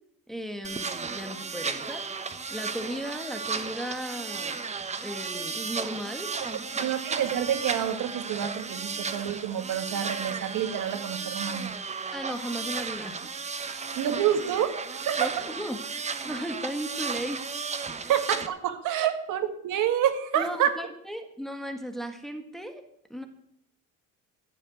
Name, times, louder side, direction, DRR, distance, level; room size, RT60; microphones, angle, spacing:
voice 1, 0.3-4.6 5.0-6.9 12.1-13.3 13.6-14.0 15.2-17.5 17.9-18.1 20.3-22.8 23.1-23.3, equal, ahead, 5 dB, 1.7 m, -36 dB
sound 1, 0.6-18.5, right 5 dB, 20° right, 1.1 m, -34 dB
voice 2, 6.8-11.7 13.9-15.3 18.1-20.7, right 10 dB, 60° right, 8 dB, 2.0 m, -28 dB
14.5 x 7.2 x 9.6 m, 0.74 s
cardioid pair, 135°, 34 cm